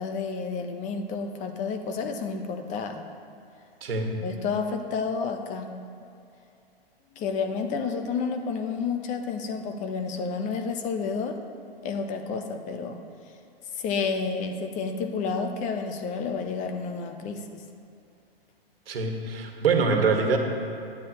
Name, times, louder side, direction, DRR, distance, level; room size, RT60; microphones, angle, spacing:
voice 1, 0.0-3.0 4.2-5.7 7.1-11.4 11.8-13.0 13.8-17.6, left 5 dB, 25° left, 6 dB, 0.8 m, -30 dB
voice 2, 3.8-4.1 18.9-20.4, right 4 dB, 70° right, 3 dB, 1.7 m, -24 dB
13.5 x 9.7 x 3.0 m, 2.6 s
hypercardioid pair, 125°, 30 cm